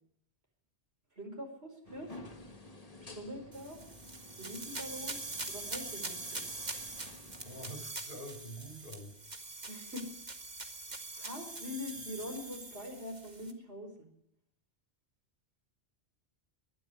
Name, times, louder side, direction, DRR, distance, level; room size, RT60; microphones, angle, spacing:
voice 1, 1.1-2.2 3.0-3.8 4.4-5.2 5.5-6.4 9.7-10.1 11.2-14.1, left 1 dB, 75° right, 3 dB, 5.3 m, -43 dB
sound 1, 1.8-7.8, left 2 dB, 35° left, 1.8 m, -52 dB
sound 2, 3.5-13.5, right 3 dB, 40° right, 1.9 m, -43 dB
voice 2, 6.8-7.1 7.4-9.2, right 1 dB, 55° left, 3 dB, 5.5 m, -47 dB
22.0 x 12.0 x 9.9 m, 0.75 s
omnidirectional pair, 1.1 m